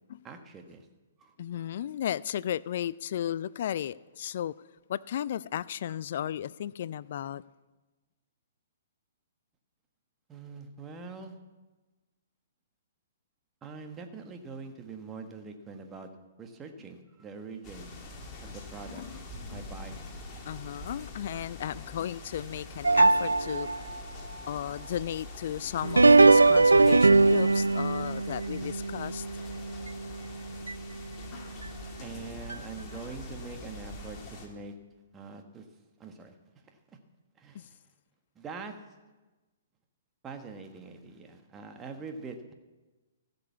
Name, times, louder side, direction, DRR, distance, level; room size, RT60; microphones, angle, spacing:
voice 1, 0.2-0.9 1.2-1.3 10.3-11.4 13.6-16.1 16.4-17.9 18.4-19.2 19.5-20.0 32.0-34.7 35.1-35.6 36.0-36.3 37.4-37.8 38.3-38.7 40.2-42.5, right 4 dB, 20° right, 1.5 m, -43 dB
voice 2, 1.4-4.5 4.9-7.4 18.9-19.2 20.5-23.7 24.5-29.3 37.5-37.7, left 10 dB, 55° left, 0.3 m, -34 dB
sound 1, 17.6-34.5, left 2 dB, 25° left, 2.4 m, -44 dB
sound 2, 22.8-24.0 25.8-30.2 30.7-30.8 31.6-31.7 32.5-32.6, right 3 dB, 85° right, 0.3 m, -21 dB
15.0 x 6.9 x 8.3 m
figure-of-eight pair, 120°, 0 cm